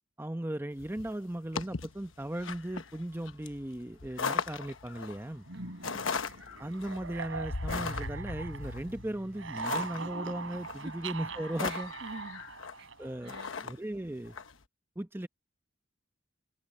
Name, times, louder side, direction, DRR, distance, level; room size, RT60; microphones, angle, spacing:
voice 1, 0.2-5.5 6.6-11.9 13.0-13.4 13.6-14.4 15.0-15.3, right 1 dB, 10° right, 0.8 m, -37 dB
sound 1, 0.8-14.5, left 5 dB, 80° left, 1.1 m, -39 dB
voice 2, 5.5-6.0 11.6-12.4 12.8-12.9 13.2-13.7, right 3 dB, 60° right, 1.4 m, -48 dB
sound 2, 5.5-9.0 9.2-13.3, right 4 dB, 80° right, 4.5 m, -41 dB
Keyboard (musical), 7.7-10.9, equal, 40° right, 1.6 m, -49 dB
head